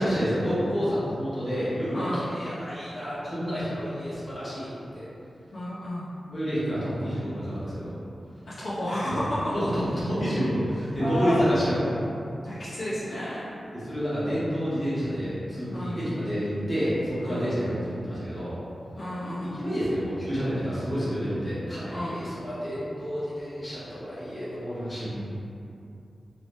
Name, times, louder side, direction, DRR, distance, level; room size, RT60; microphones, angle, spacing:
voice 1, 0.0-5.1 6.3-7.9 9.1-9.2 9.5-11.9 13.7-18.5 19.5-25.2, equal, 20° left, -12 dB, 1.3 m, -29 dB
voice 2, 1.9-2.3 5.5-6.1 8.5-9.5 11.0-11.4 12.4-13.5 15.7-16.0 17.2-17.6 19.0-19.6 21.9-22.2, left 1 dB, 60° left, -11 dB, 0.7 m, -32 dB
3.0 x 3.0 x 3.1 m, 2.6 s
wide cardioid pair, 145°, 0 cm